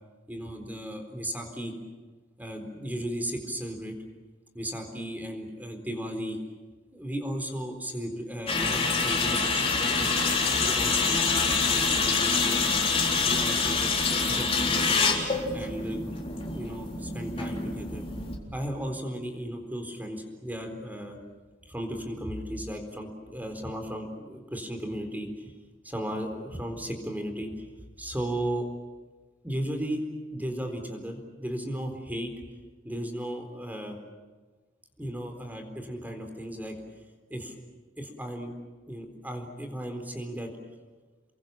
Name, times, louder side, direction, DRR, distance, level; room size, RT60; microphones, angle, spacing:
voice 1, 0.3-1.7 2.4-4.0 4.5-6.4 6.9-10.1 10.6-12.8 13.3-15.1 15.5-16.1 16.5-18.1 18.5-21.2 21.7-25.5 25.8-27.5 28.0-28.7 29.4-30.0 30.3-32.3 32.8-34.0 35.0-36.8 37.3-37.5 38.0-38.5 38.9-40.5, equal, 10° right, 4 dB, 4.1 m, -35 dB
sound 1, 8.5-18.4, left 4 dB, 30° left, 3.9 m, -26 dB
29.0 x 23.0 x 7.5 m, 1.3 s
head